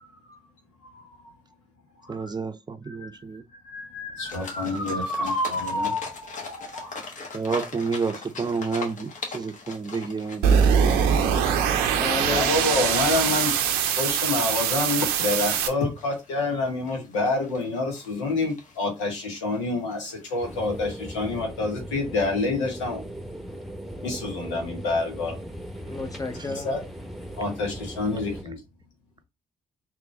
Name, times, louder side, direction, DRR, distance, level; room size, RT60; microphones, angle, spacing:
voice 1, 0.9-1.3 2.0-2.3 2.9-3.0 3.6-7.0 11.9-13.5 14.0-23.0 24.0-25.4 26.6-26.8 27.4-28.6, left 2 dB, 90° left, 1.0 m, -28 dB
voice 2, 2.1-3.4 7.3-11.2 26.4-26.5, right 4 dB, 30° right, 0.6 m, -30 dB
sound 1, 4.2-21.4, left 4 dB, 55° left, 1.1 m, -43 dB
sound 2, 10.4-15.7, right 7 dB, 80° right, 0.5 m, -22 dB
voice 3, 12.0-12.6 25.8-26.8, left 3 dB, 25° left, 0.9 m, -32 dB
sound 3, 20.4-28.4, equal, ahead, 1.0 m, -38 dB
3.7 x 3.0 x 3.6 m
hypercardioid pair, 45°, 15 cm